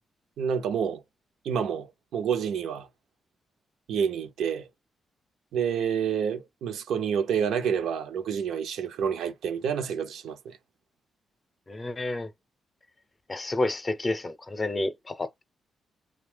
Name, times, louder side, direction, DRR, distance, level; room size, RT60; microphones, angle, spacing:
voice 1, 0.4-1.0 1.4-1.9 2.1-2.9 3.9-4.7 5.5-10.6, right 7 dB, 85° right, 0.7 m, -28 dB
voice 2, 11.7-12.3 13.3-15.4, left 2 dB, 25° left, 0.6 m, -30 dB
2.8 x 2.3 x 3.3 m
cardioid pair, 110°, 0 cm